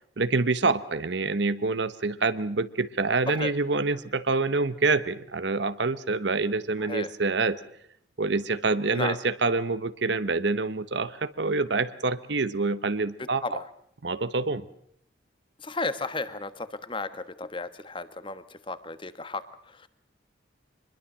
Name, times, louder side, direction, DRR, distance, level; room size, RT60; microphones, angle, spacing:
voice 1, 0.2-7.6 8.2-13.6 14.0-14.6, right 3 dB, 65° right, 13 dB, 1.0 m, -26 dB
voice 2, 6.8-7.1 8.9-9.2 13.4-13.6 15.6-19.4 19.7-19.9, left 3 dB, 25° left, 12 dB, 1.4 m, -34 dB
25.0 x 21.5 x 7.5 m, 0.67 s
head